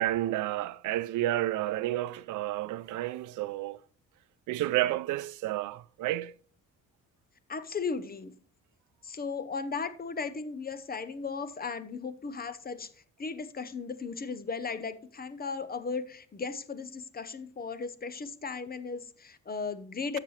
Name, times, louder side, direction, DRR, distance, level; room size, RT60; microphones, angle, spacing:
voice 1, 0.0-3.8 4.5-6.3, right 15 dB, 80° right, 0.5 m, -30 dB
voice 2, 7.5-8.3 9.0-12.9 13.2-20.2, left 5 dB, 30° left, 0.8 m, -36 dB
13.5 x 6.8 x 3.2 m
cardioid pair, 90°, 30 cm